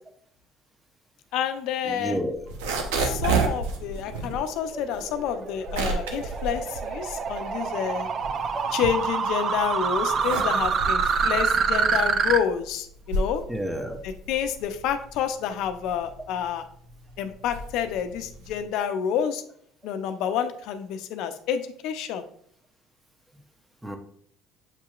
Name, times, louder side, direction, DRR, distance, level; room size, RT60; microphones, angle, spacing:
voice 1, 1.3-2.2 3.0-8.1 8.7-13.4 14.0-16.6 17.2-19.4 19.8-22.2, left 8 dB, 70° left, 9 dB, 0.5 m, -29 dB
voice 2, 1.9-2.4 4.7-4.8 13.5-14.0 23.8-24.0, equal, 10° right, 4 dB, 0.8 m, -30 dB
sound 1, 2.3-7.6 8.0-9.4 9.9-18.7, right 3 dB, 90° right, 0.7 m, -31 dB
sound 2, 4.3-12.4, right 5 dB, 45° right, 0.4 m, -26 dB
7.3 x 2.8 x 2.4 m, 0.64 s
supercardioid pair, 85°, 0 cm